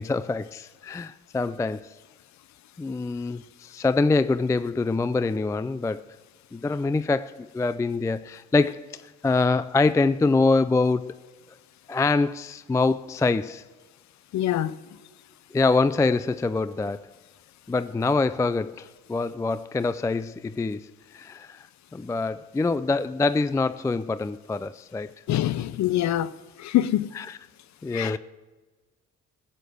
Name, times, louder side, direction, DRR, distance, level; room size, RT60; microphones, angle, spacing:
voice 1, 0.0-1.9 2.8-6.1 6.5-11.1 11.9-13.6 15.5-17.1 17.7-21.6 21.9-25.1 27.1-27.4 27.8-28.2, left 3 dB, 10° left, 0.3 m, -25 dB
voice 2, 14.3-14.7 25.3-26.3 26.6-27.1 27.9-28.1, left 13 dB, 65° left, 0.6 m, -24 dB
15.5 x 6.6 x 7.9 m
cardioid pair, 90°, 30 cm